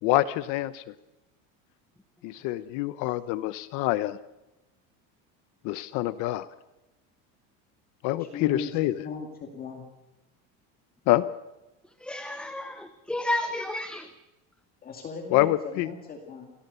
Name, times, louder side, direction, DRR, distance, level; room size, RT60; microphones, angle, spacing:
voice 1, 0.0-0.9 2.2-4.2 5.6-6.5 8.0-9.0 11.1-11.3 15.3-15.9, left 16 dB, 50° left, 15 dB, 0.9 m, -26 dB
voice 2, 8.2-9.9 14.8-16.5, left 5 dB, 25° left, 3 dB, 2.4 m, -38 dB
voice 3, 12.0-14.1, left 1 dB, 5° left, 8 dB, 0.7 m, -31 dB
28.0 x 18.5 x 6.8 m, 0.99 s
cardioid pair, 180°, 38 cm